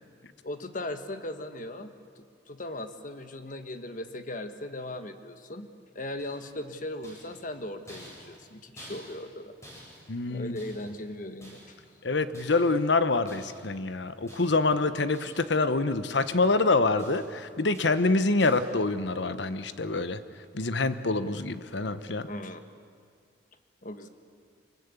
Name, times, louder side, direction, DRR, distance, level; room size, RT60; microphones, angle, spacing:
voice 1, 0.4-5.7 5.9-9.5 10.3-11.6 22.3-22.6 23.8-24.1, left 1 dB, 45° left, 8 dB, 1.3 m, -38 dB
Metallic Rattling Bangs, 6.2-6.6 7.0-9.4 9.6-11.0 11.4-11.9 12.3-12.8 13.3-13.7 14.3-14.8 15.1-15.6 15.9-16.6 17.0-17.4 17.7-18.1 18.4-18.8, equal, 15° left, 7.9 m, -51 dB
voice 2, 10.1-10.6 12.0-20.2 20.5-22.3, left 3 dB, 75° left, 12 dB, 1.0 m, -26 dB
24.5 x 21.0 x 8.3 m, 2.1 s
head